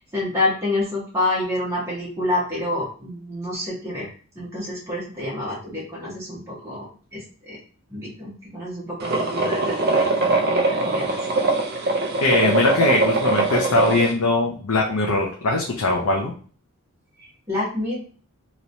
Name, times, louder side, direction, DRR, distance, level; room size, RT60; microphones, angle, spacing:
voice 1, 0.0-4.1 4.3-6.8 7.1-7.6 7.9-10.1 10.5-11.2 17.2-18.0, left 2 dB, 15° right, -7 dB, 1.1 m, -28 dB
sound 1, 9.0-14.1, right 2 dB, 45° right, 0.6 m, -22 dB
voice 2, 12.2-16.3, left 2 dB, 85° left, -1 dB, 0.7 m, -21 dB
3.0 x 3.0 x 2.6 m, 0.40 s
head